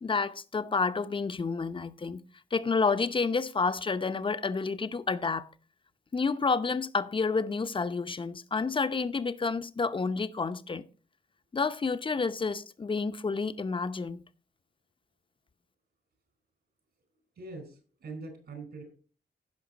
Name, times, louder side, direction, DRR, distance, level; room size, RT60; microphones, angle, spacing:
voice 1, 0.0-2.2 2.5-5.5 6.1-10.9 11.5-14.2, left 4 dB, 30° left, 0.7 m, -29 dB
voice 2, 17.4-19.0, right 3 dB, 70° right, 4.4 m, -43 dB
16.0 x 5.5 x 4.0 m
cardioid pair, 70°, 18 cm